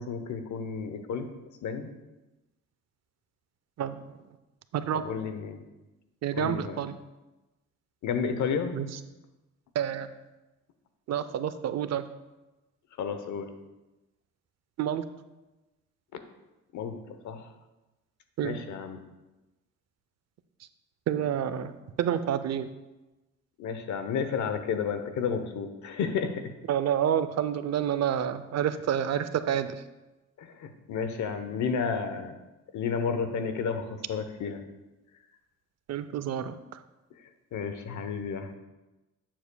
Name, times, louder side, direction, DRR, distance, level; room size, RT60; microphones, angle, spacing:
voice 1, 0.0-1.3 1.6-1.9 4.9-5.6 6.3-6.8 8.0-8.7 13.0-13.5 16.1-16.2 16.7-17.0 17.2-17.4 18.4-19.0 23.6-26.5 30.4-32.4 32.7-34.6 37.5-38.5, left 6 dB, 75° left, 8 dB, 0.9 m, -31 dB
voice 2, 4.7-5.0 6.2-6.9 8.7-8.9 9.8-10.1 11.1-12.0 14.8-15.1 18.4-18.6 21.1-21.7 22.0-22.7 26.7-29.7 35.9-36.5, right 9 dB, 60° right, 12 dB, 0.6 m, -28 dB
11.5 x 7.5 x 2.3 m, 1.1 s
cardioid pair, 90°, 30 cm